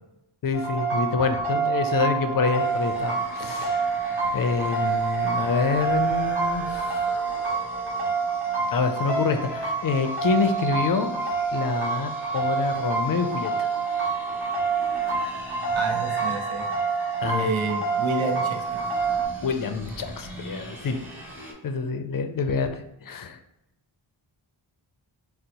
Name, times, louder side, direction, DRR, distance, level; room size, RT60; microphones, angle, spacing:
voice 1, 0.4-7.1 8.7-11.1 11.5-13.7 17.2-17.5 19.4-21.0 21.6-23.4, left 5 dB, 45° left, 8 dB, 0.4 m, -27 dB
sound 1, 0.5-19.3, right 5 dB, 50° right, 1.3 m, -27 dB
sound 2, 2.6-21.5, equal, 5° right, 0.8 m, -43 dB
voice 2, 15.7-16.7 17.3-18.6, right 2 dB, 70° right, 3 dB, 0.7 m, -29 dB
2.8 x 2.0 x 4.0 m, 0.88 s
cardioid pair, 45°, 50 cm